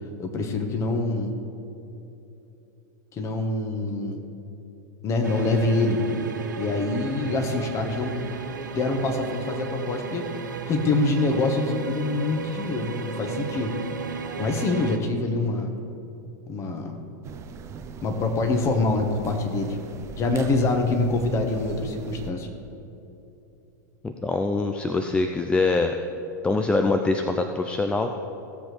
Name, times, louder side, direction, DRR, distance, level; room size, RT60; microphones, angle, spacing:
voice 1, 0.2-1.3 3.1-4.2 5.0-6.0 6.6-8.1 8.7-10.3 10.7-13.7 14.4-15.7 16.5-17.0 18.0-19.8 20.2-22.5, left 2 dB, 30° left, 4 dB, 1.3 m, -25 dB
sound 1, 5.2-15.0, right 6 dB, 70° right, 0.8 m, -34 dB
sound 2, 17.2-22.3, right 5 dB, 30° right, 0.7 m, -40 dB
voice 2, 24.0-26.0 26.4-28.1, left 3 dB, 10° left, 5 dB, 0.5 m, -24 dB
16.5 x 7.6 x 3.3 m, 2.9 s
figure-of-eight pair, 90°, 10 cm